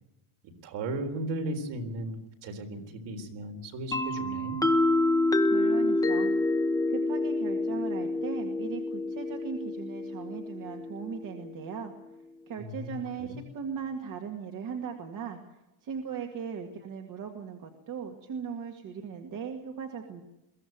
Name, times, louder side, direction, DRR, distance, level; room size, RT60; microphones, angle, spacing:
voice 1, 0.6-4.6 12.6-13.4, right 1 dB, 55° right, 4 dB, 4.2 m, -36 dB
sound 1, 3.9-11.6, left 2 dB, 5° left, 1.1 m, -28 dB
voice 2, 5.5-6.3 6.9-11.9 12.5-15.4 15.8-20.2, right 6 dB, 40° right, 3 dB, 2.1 m, -38 dB
22.5 x 15.5 x 9.4 m, 0.94 s
cardioid pair, 175°, 49 cm